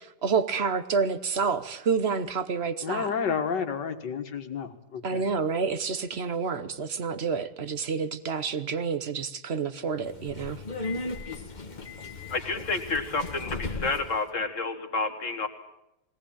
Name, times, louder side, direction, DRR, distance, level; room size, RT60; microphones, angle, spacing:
voice 1, 0.2-3.1 5.0-10.6, right 5 dB, 45° right, 13 dB, 1.0 m, -28 dB
voice 2, 2.8-5.2, left 6 dB, 90° left, 6 dB, 2.4 m, -30 dB
Subway metro underground, 10.0-14.2, left 3 dB, 30° left, 1.3 m, -36 dB
voice 3, 12.3-15.5, left 3 dB, 45° left, 8 dB, 2.1 m, -30 dB
20.5 x 18.0 x 8.9 m, 0.87 s
omnidirectional pair, 1.8 m